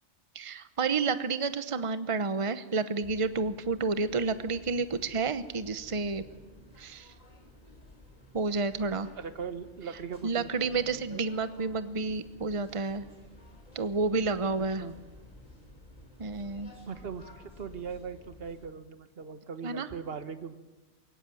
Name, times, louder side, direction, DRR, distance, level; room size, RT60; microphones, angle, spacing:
voice 1, 0.3-6.3 6.8-7.1 8.3-9.1 10.2-13.1 13.7-14.8 16.2-16.7 19.6-19.9, right 4 dB, 30° right, 12 dB, 0.9 m, -30 dB
sound 1, 3.0-18.7, left 1 dB, 35° left, 4.5 m, -53 dB
voice 2, 9.2-11.2 14.8-15.0 16.8-20.6, right 6 dB, 55° right, 11 dB, 1.5 m, -40 dB
22.0 x 17.0 x 9.1 m, 1.2 s
omnidirectional pair, 1.2 m